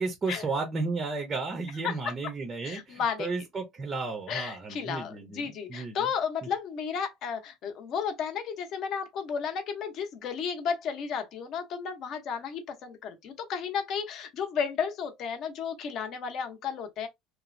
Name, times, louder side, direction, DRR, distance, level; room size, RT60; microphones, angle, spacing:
voice 1, 0.0-6.1 6.4-6.5, right 3 dB, 20° right, 0.6 m, -33 dB
voice 2, 2.6-3.3 4.3-17.1, left 6 dB, 40° left, 0.8 m, -33 dB
3.0 x 2.0 x 2.5 m
cardioid pair, 160°, 0 cm